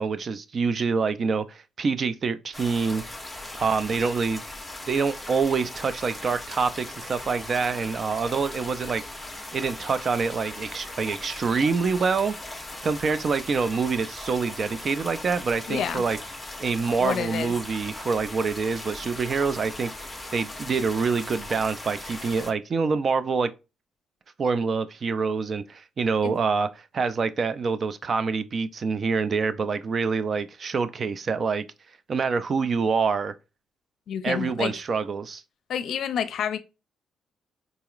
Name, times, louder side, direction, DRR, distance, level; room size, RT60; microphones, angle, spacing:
voice 1, 0.0-3.0 3.5-4.4 4.9-9.0 9.5-12.3 12.8-16.2 16.6-19.9 20.3-23.5 24.4-31.6 32.1-33.3 34.2-35.4, right 5 dB, 45° right, 0.4 m, -26 dB
sound 1, 2.5-22.5, left 2 dB, 10° left, 0.9 m, -39 dB
voice 2, 15.7-16.0 17.0-17.5 26.2-26.3 34.1-34.7 35.7-36.6, left 8 dB, 70° left, 0.5 m, -28 dB
4.0 x 2.9 x 2.4 m
cardioid pair, 90°, 0 cm